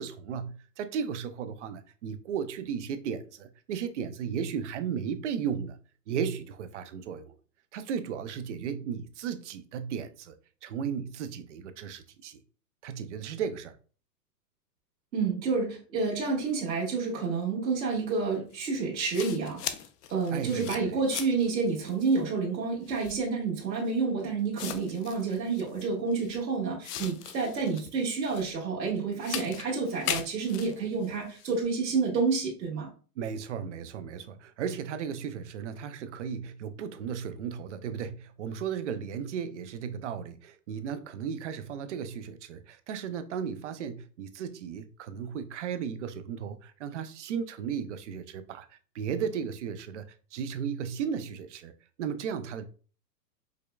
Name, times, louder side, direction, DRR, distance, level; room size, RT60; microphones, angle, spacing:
voice 1, 0.0-5.8 6.1-7.4 7.7-10.4 10.6-12.4 12.8-13.8 20.3-21.0 33.2-51.7 52.0-52.6, right 7 dB, 50° right, 0.4 m, -35 dB
voice 2, 15.1-19.6 20.1-32.9, right 4 dB, 80° right, 1.5 m, -29 dB
sound 1, 18.5-18.6 19.1-21.5 21.9-22.2 22.9-23.2 24.0-24.1 24.6-26.4 26.8-28.5 29.2-31.6, left 10 dB, 70° left, 0.6 m, -39 dB
4.9 x 2.2 x 2.2 m
hypercardioid pair, 140°, 50 cm